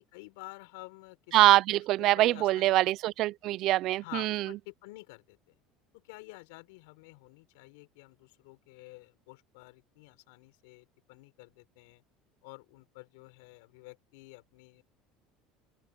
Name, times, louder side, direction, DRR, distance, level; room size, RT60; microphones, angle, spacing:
voice 1, 0.0-1.4 1.7-2.7 4.0-5.6 5.9-12.0 12.4-14.8, left 26 dB, 85° left, 6.0 m, -50 dB
voice 2, 1.3-4.5, right 16 dB, 60° right, 0.6 m, -24 dB
open air
supercardioid pair, 115°, 0 cm